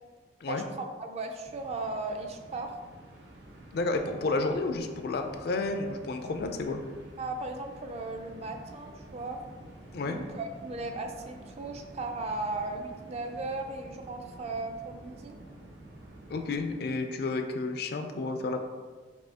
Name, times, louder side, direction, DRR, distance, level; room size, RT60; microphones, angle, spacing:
voice 1, 0.5-2.7 7.2-9.4 10.0-15.3, right 2 dB, 35° right, 4 dB, 0.4 m, -36 dB
sound 1, 1.4-16.8, right 1 dB, 90° right, 0.7 m, -49 dB
voice 2, 3.7-6.8 9.9-10.2 16.3-18.6, left 3 dB, 60° left, 5 dB, 0.4 m, -31 dB
5.4 x 2.8 x 2.8 m, 1.4 s
head